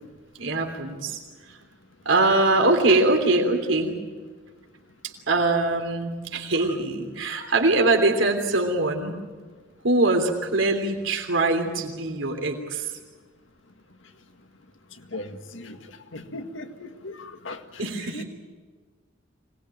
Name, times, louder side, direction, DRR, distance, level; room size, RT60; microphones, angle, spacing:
voice 1, 0.4-1.2 2.0-4.0 5.0-9.2 9.8-12.9 17.8-18.2, right 2 dB, 80° right, 4 dB, 3.3 m, -23 dB
voice 2, 15.1-15.8 16.1-18.2, left 2 dB, 85° left, 6 dB, 2.0 m, -38 dB
25.5 x 20.0 x 9.1 m, 1.4 s
head